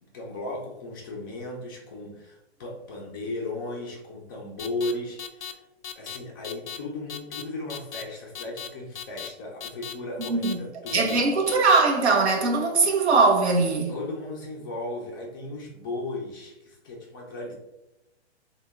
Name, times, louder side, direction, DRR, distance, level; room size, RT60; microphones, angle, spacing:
voice 1, 0.0-5.6 5.9-11.1 13.9-17.5, left 2 dB, 20° left, 0.3 m, -36 dB
sound 1, 4.6-4.9 5.2-5.5 5.8-6.2 6.4-6.8 7.1-7.4 7.7-8.0 8.3-8.7 8.9-9.3 9.6-9.9 10.2-10.5 10.9-11.2 11.5-11.8, left 9 dB, 90° left, 0.6 m, -36 dB
voice 2, 10.3-10.6 10.9-13.9, right 3 dB, 70° right, 0.9 m, -21 dB
2.9 x 2.2 x 3.4 m
hypercardioid pair, 135°, 34 cm